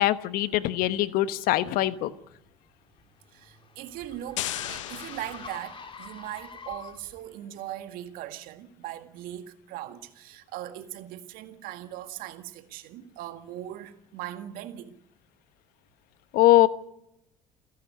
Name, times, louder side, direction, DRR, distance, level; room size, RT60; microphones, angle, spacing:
voice 1, 0.0-2.1 16.3-16.7, left 15 dB, 65° left, 1.2 m, -22 dB
sound 1, 2.7-7.2, left 5 dB, 35° left, 3.0 m, -45 dB
voice 2, 3.3-14.9, right 13 dB, 70° right, 1.9 m, -40 dB
sound 2, 4.4-6.2, left 14 dB, 85° left, 0.9 m, -36 dB
29.0 x 11.0 x 9.6 m
hypercardioid pair, 55°, 16 cm